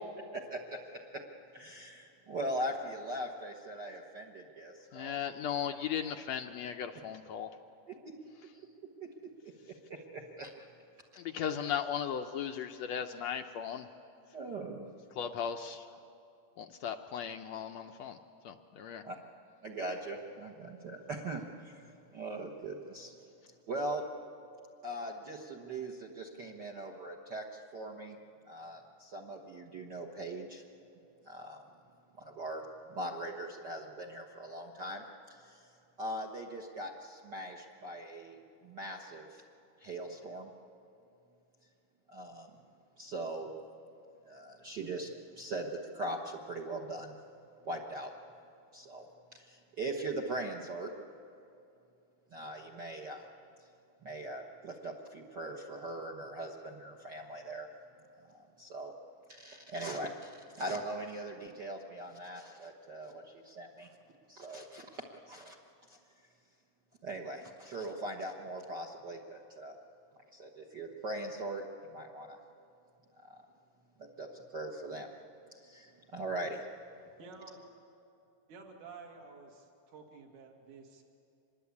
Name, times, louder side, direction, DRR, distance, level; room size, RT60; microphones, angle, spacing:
voice 1, 0.3-0.8 1.1-1.2 1.5-5.2 7.9-8.1 9.0-9.1 9.4-9.5 9.9-10.7 14.3-14.9 19.0-19.2 19.6-23.1 23.7-24.0 24.8-27.4 27.7-28.2 28.5-30.6 31.2-31.6 32.2-35.7 36.0-39.4 39.8-40.5 42.1-42.5 43.0-43.5 44.3-45.1 45.4-47.2 47.6-48.1 48.7-49.0 49.3-50.9 52.3-53.3 54.0-57.7 58.3-58.9 59.3-63.9 64.3-65.5 65.9-66.0 67.0-69.7 70.3-72.4 73.3-73.4 74.0-75.1 75.5-76.6, right 1 dB, 55° right, 1 dB, 1.2 m, -41 dB
voice 2, 4.9-7.5 11.2-13.9 15.2-15.9 16.6-18.2 18.4-19.0, left 8 dB, 75° left, 7 dB, 1.6 m, -37 dB
voice 3, 77.2-77.6 78.5-81.0, right 4 dB, 70° right, 2 dB, 3.7 m, -51 dB
25.5 x 21.5 x 8.4 m, 2.6 s
omnidirectional pair, 3.8 m